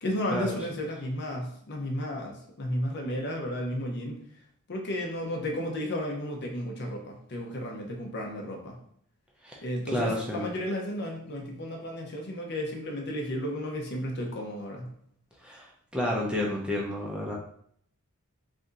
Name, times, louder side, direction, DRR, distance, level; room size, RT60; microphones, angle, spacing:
voice 1, 0.0-4.2 4.7-8.8 9.6-14.9, left 1 dB, 50° left, 1 dB, 0.8 m, -33 dB
voice 2, 9.9-10.5 15.4-15.7 15.9-17.3, left 1 dB, 5° right, -3 dB, 0.5 m, -30 dB
3.3 x 2.7 x 3.8 m, 0.65 s
head